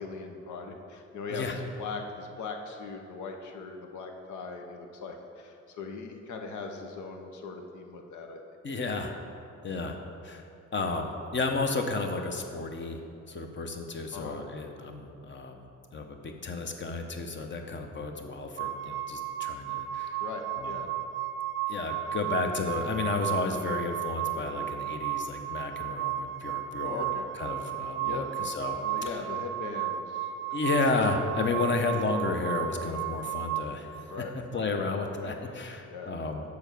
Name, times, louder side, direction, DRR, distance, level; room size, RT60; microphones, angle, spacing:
voice 1, 0.0-8.4 14.1-14.4 20.2-20.9 26.8-27.2 28.0-28.2 28.7-30.3 31.5-31.7 34.1-34.7 35.2-35.3 35.9-36.1, left 4 dB, 75° left, 3 dB, 1.0 m, -40 dB
voice 2, 8.6-9.1 9.6-10.0 10.2-10.4 10.7-13.0 13.3-15.6 15.9-20.2 20.6-20.7 21.7-28.8 30.5-34.0 34.5-36.4, left 3 dB, 40° left, 4 dB, 1.0 m, -32 dB
sound 1, 18.6-33.6, right 11 dB, 45° right, 0.4 m, -34 dB
7.0 x 4.6 x 6.8 m, 2.6 s
cardioid pair, 90°, 30 cm